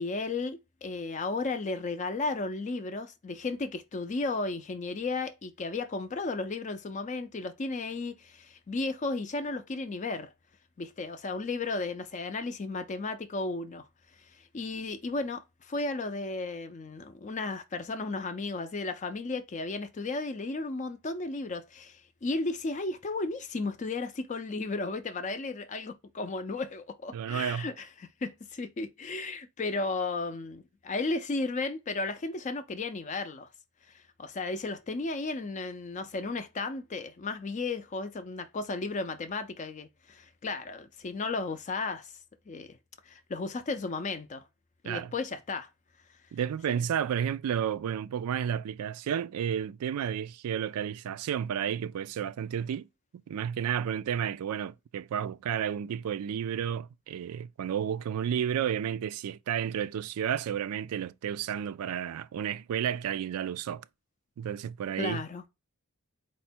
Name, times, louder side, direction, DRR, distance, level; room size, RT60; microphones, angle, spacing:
voice 1, 0.0-10.3 10.8-13.9 14.3-33.5 33.9-42.1 42.5-42.8 43.1-44.4 44.8-45.7 46.7-46.9 65.0-65.4, left 3 dB, 35° left, 0.4 m, -34 dB
voice 2, 27.1-27.7 44.8-45.1 46.3-52.9 53.3-63.9 64.4-65.2, right 8 dB, 85° right, 0.3 m, -32 dB
4.3 x 2.1 x 4.2 m
head